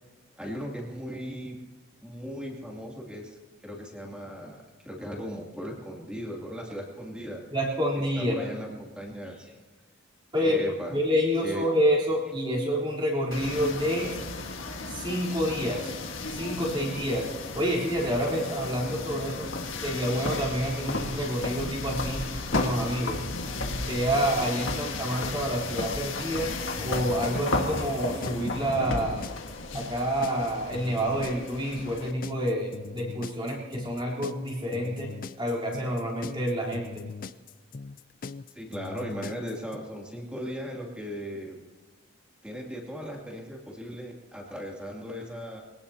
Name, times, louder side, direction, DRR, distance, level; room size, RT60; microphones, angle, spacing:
voice 1, 0.4-1.6 2.0-3.4 3.6-7.4 8.2-9.6 10.4-11.0 11.4-11.7 19.1-19.2 38.5-41.6 42.4-45.6, equal, 5° right, -1 dB, 2.6 m, -37 dB
voice 2, 7.5-8.5 10.3-10.6 10.9-14.2 14.9-15.9 16.3-19.5 19.8-22.2 22.5-23.2 23.9-26.5 26.8-29.2 29.7-37.1, equal, 25° right, -4 dB, 3.7 m, -28 dB
sound 1, 13.3-32.1, left 3 dB, 80° left, 1.6 m, -34 dB
sound 2, 26.8-39.8, left 4 dB, 45° left, 0.4 m, -40 dB
24.0 x 18.0 x 2.9 m, 1.3 s
head